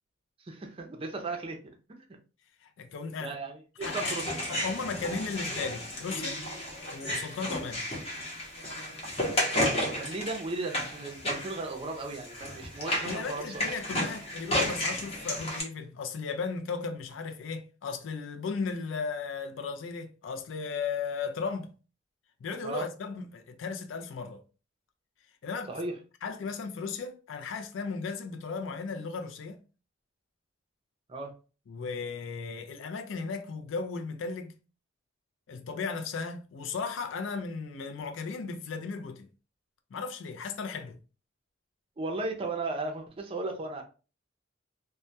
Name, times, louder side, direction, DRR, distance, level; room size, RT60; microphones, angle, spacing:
voice 1, 0.4-1.6 3.2-4.3 9.5-13.5 22.6-22.9 25.7-26.0 31.1-31.3 42.0-43.8, right 2 dB, 30° right, 0.4 m, -35 dB
voice 2, 2.6-3.4 3.8-4.2 4.5-6.4 6.9-7.9 13.1-21.7 22.4-24.4 25.4-25.7 26.2-29.6 31.7-34.5 35.5-39.3 39.9-41.0, left 5 dB, 75° left, 0.4 m, -36 dB
sound 1, 3.8-15.6, left 1 dB, 30° left, 0.7 m, -33 dB
2.2 x 2.1 x 2.7 m
head